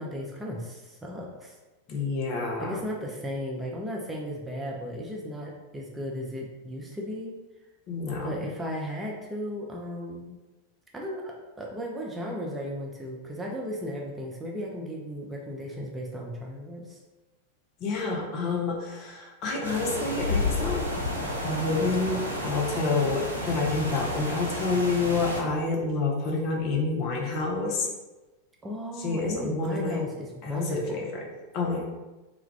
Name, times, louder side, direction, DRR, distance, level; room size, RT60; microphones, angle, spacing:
voice 1, 0.0-1.6 2.6-7.3 8.2-10.3 10.9-17.0 28.6-31.1, equal, 10° right, -2 dB, 0.4 m, -35 dB
voice 2, 1.9-2.8 7.9-8.3 17.8-20.9 21.4-27.9 29.0-30.0 30.4-31.1 31.5-31.8, left 3 dB, 35° left, -2 dB, 0.6 m, -28 dB
sound 1, 19.6-25.4, left 2 dB, 90° right, 0.5 m, -31 dB
2.3 x 2.2 x 3.2 m, 1.1 s
figure-of-eight pair, 90°, 0 cm